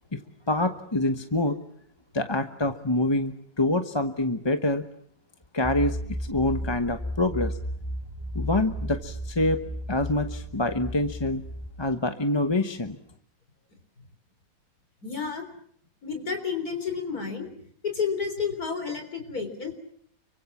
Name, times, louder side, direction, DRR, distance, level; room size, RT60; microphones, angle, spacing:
voice 1, 0.1-1.6 2.1-4.8 5.5-7.6 8.3-9.6 9.9-11.4 11.8-13.0, left 2 dB, 20° left, 7 dB, 0.9 m, -26 dB
sound 1, 5.6-11.7, equal, 10° right, 4.3 m, -34 dB
voice 2, 15.0-15.4 16.0-17.5 17.8-19.7, left 6 dB, 60° left, 6 dB, 4.3 m, -30 dB
29.5 x 24.5 x 7.2 m, 0.65 s
omnidirectional pair, 1.8 m